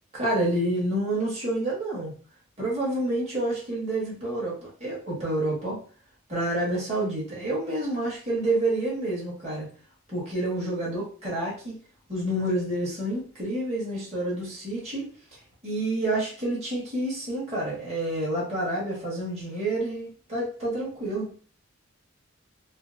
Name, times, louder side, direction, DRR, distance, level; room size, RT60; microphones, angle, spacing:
voice 1, 0.1-2.1 2.6-5.8 6.3-9.7 10.1-11.8 12.1-15.1 15.6-21.3, right 1 dB, 30° right, -6 dB, 1.5 m, -28 dB
4.2 x 2.0 x 2.5 m, 0.40 s
head